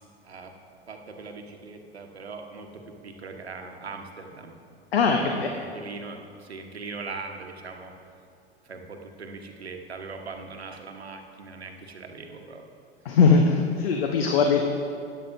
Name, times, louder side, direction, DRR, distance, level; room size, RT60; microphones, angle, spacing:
voice 1, 0.9-4.6 5.1-7.9 8.6-12.7, right 4 dB, 85° right, 4 dB, 1.0 m, -40 dB
voice 2, 4.9-5.5 13.0-14.7, left 5 dB, 70° left, 3 dB, 0.9 m, -20 dB
14.5 x 10.0 x 2.6 m, 2.3 s
figure-of-eight pair, 80°, 31 cm